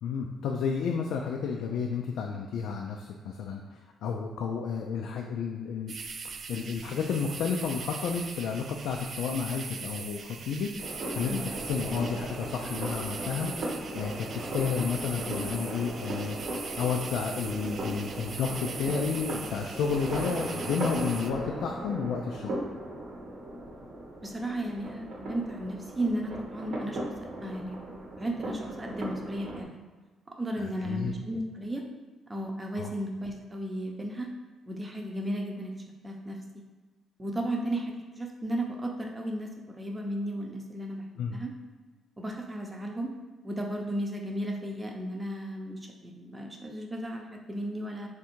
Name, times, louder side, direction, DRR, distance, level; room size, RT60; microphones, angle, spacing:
voice 1, 0.0-5.9 6.5-13.5 13.9-22.5 30.6-31.1 32.8-32.9 41.2-41.4, left 6 dB, 80° left, 1 dB, 0.3 m, -31 dB
sound 1, 5.9-21.3, right 5 dB, 55° right, 0.3 m, -41 dB
sound 2, 10.8-29.6, right 1 dB, 70° right, 0.9 m, -37 dB
voice 2, 24.2-27.0 27.4-29.8 30.4-31.8 32.3-34.3 34.7-35.7 36.0-36.4 37.2-41.5 42.2-43.1 43.4-48.1, right 1 dB, 20° right, 1 dB, 0.7 m, -34 dB
3.7 x 2.6 x 4.3 m, 1.3 s
cardioid pair, 90°, 0 cm